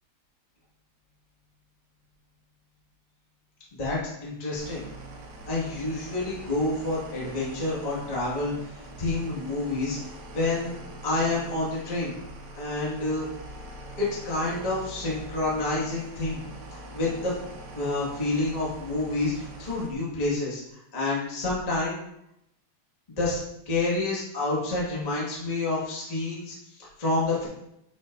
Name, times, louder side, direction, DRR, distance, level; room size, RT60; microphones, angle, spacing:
voice 1, 3.7-4.8 5.5-10.7 11.0-12.1 12.5-13.3 14.0-16.4 16.7-17.3 17.7-22.0 23.2-23.4 23.6-27.5, left 2 dB, 40° left, -6 dB, 0.5 m, -28 dB
sound 1, 4.6-19.9, right 2 dB, 90° right, 2.9 m, -43 dB
8.1 x 5.4 x 2.6 m, 0.81 s
omnidirectional pair, 4.0 m